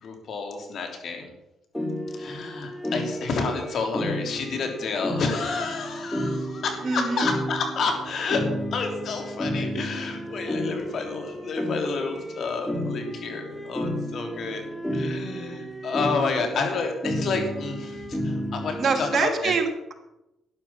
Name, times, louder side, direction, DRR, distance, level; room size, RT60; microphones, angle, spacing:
voice 1, 0.0-1.3 2.1-8.4 8.7-14.6 14.9-19.5, left 4 dB, 60° left, 4 dB, 3.3 m, -30 dB
sound 1, 1.7-19.2, equal, 5° left, 2.0 m, -32 dB
voice 2, 6.8-7.3 18.8-19.9, right 4 dB, 50° right, 3 dB, 2.6 m, -25 dB
12.0 x 11.0 x 5.8 m, 0.90 s
cardioid pair, 90°, 0 cm